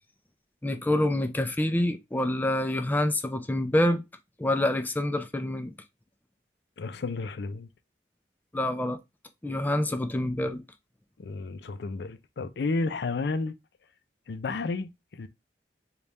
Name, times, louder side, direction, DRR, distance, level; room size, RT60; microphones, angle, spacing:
voice 1, 0.6-4.0 4.4-5.7 8.5-9.0 9.4-10.6, left 1 dB, 10° left, 0.4 m, -27 dB
voice 2, 6.8-7.7 11.2-13.6 14.3-15.3, left 3 dB, 70° left, 0.4 m, -32 dB
3.4 x 2.3 x 4.1 m
head